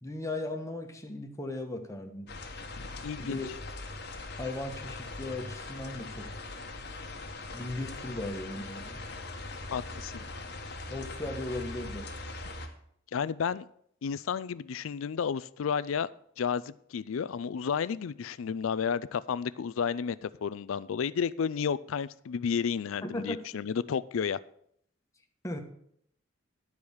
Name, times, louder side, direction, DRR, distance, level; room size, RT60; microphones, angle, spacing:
voice 1, 0.0-2.3 3.2-3.5 4.4-6.3 7.5-9.0 10.9-12.1 23.0-23.4 25.4-25.6, left 2 dB, 15° left, 3 dB, 1.2 m, -37 dB
sound 1, 2.3-12.7, left 2 dB, 55° left, 1.2 m, -41 dB
voice 2, 2.8-3.4 9.7-10.1 13.1-13.7 14.0-16.1 16.4-24.4, left 7 dB, 80° left, 18 dB, 0.4 m, -32 dB
10.5 x 4.8 x 7.0 m, 0.69 s
head